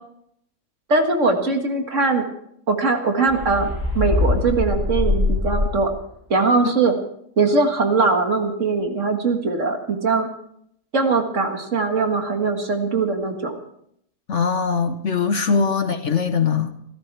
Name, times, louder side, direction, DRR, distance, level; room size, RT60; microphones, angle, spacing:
voice 1, 0.9-2.2 2.7-5.9 6.3-6.9 7.4-10.3 10.9-13.6 15.5-15.6, right 3 dB, 50° right, 4 dB, 2.1 m, -21 dB
sound 1, 3.3-6.1, left 2 dB, 25° right, 5.2 m, -23 dB
voice 2, 14.3-16.7, left 5 dB, 50° left, 8 dB, 1.3 m, -21 dB
26.0 x 14.0 x 3.4 m, 0.71 s
omnidirectional pair, 1.7 m